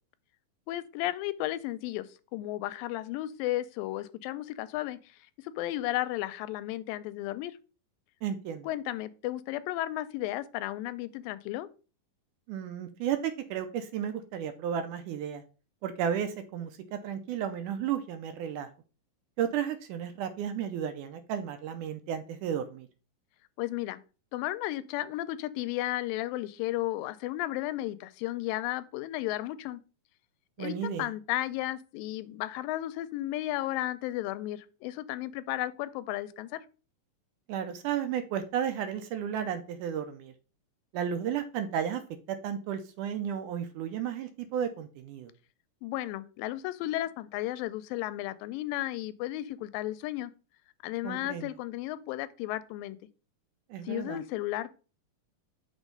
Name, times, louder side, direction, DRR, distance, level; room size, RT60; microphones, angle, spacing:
voice 1, 0.7-2.1 2.3-5.2 5.4-7.6 8.6-11.7 23.6-24.0 24.3-29.8 30.6-36.6 45.8-50.3 50.8-53.0 53.8-54.8, left 15 dB, 85° left, 2.3 m, -34 dB
voice 2, 8.2-8.7 12.5-15.4 15.8-18.7 19.4-22.9 30.6-31.1 37.5-40.3 40.9-42.0 42.3-45.3 51.0-51.5 53.7-54.2, right 9 dB, 80° right, 2.0 m, -33 dB
6.3 x 3.4 x 5.2 m
omnidirectional pair, 4.0 m